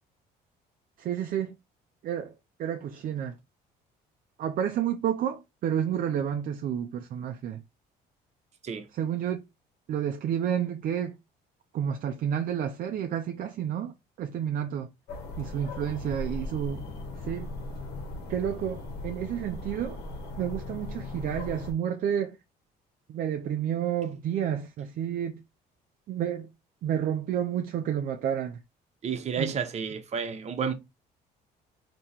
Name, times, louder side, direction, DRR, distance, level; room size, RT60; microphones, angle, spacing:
voice 1, 1.0-1.5 2.0-2.3 2.6-3.4 4.4-7.6 8.9-9.4 9.9-11.2 11.7-14.9 15.4-16.9 17.2-17.5 18.3-20.0 20.4-22.4 23.1-25.4 26.1-26.5 26.8-28.6 29.4-29.5, right 9 dB, 55° right, 0.5 m, -30 dB
sound 1, 15.1-21.7, left 2 dB, 80° left, 1.4 m, -38 dB
voice 2, 29.0-30.7, right 6 dB, 40° right, 0.9 m, -31 dB
3.5 x 2.9 x 4.3 m
cardioid pair, 110°, 17 cm